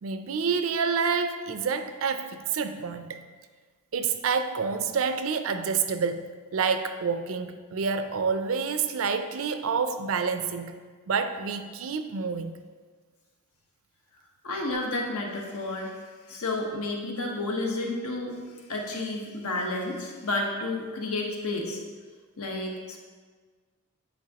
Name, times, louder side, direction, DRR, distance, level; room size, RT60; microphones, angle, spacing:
voice 1, 0.0-3.2 3.9-10.8 11.1-12.5, right 5 dB, 65° right, 9 dB, 0.4 m, -28 dB
voice 2, 14.4-15.9 16.3-18.3 18.7-21.8 22.4-23.0, left 2 dB, 80° left, 0 dB, 1.1 m, -31 dB
9.1 x 4.5 x 2.8 m, 1.5 s
head